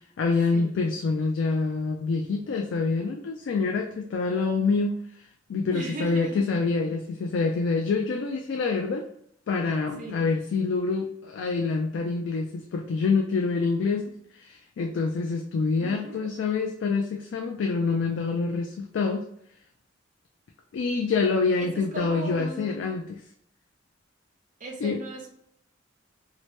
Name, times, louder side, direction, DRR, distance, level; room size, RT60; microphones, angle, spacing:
voice 1, 0.2-9.1 9.5-19.3 20.7-23.2 24.8-25.0, left 4 dB, 85° left, 2 dB, 0.3 m, -26 dB
voice 2, 5.7-6.4 10.0-10.3 15.8-16.3 21.6-22.9 24.6-25.3, right 1 dB, 45° right, 1 dB, 0.6 m, -37 dB
2.8 x 2.1 x 3.1 m, 0.71 s
head